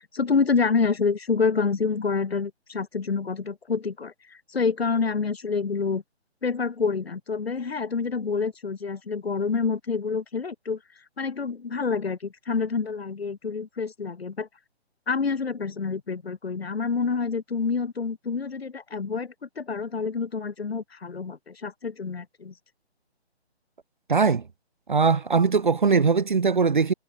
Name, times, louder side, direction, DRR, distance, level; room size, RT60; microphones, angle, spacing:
voice 1, 0.0-6.0 6.4-14.5 15.1-22.6, left 5 dB, 65° left, 2.8 m, -27 dB
voice 2, 24.1-24.4 24.9-26.9, right 5 dB, 45° right, 0.8 m, -20 dB
hypercardioid pair, 180°, 33 cm